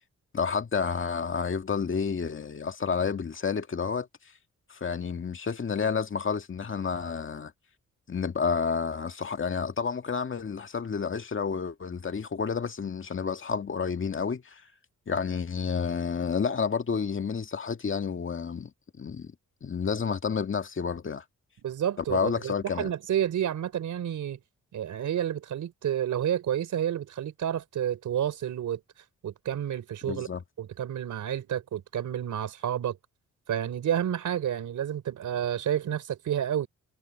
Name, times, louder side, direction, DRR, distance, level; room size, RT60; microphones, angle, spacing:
voice 1, 0.3-4.1 4.7-7.5 8.1-14.6 15.1-18.7 19.0-19.3 19.6-21.2 22.1-22.9 30.1-30.4, left 6 dB, 45° left, 2.1 m, -30 dB
voice 2, 21.6-24.4 24.7-28.8 29.2-30.3 30.6-33.0 33.5-36.7, right 10 dB, 80° right, 3.7 m, -30 dB
cardioid pair, 85°, 30 cm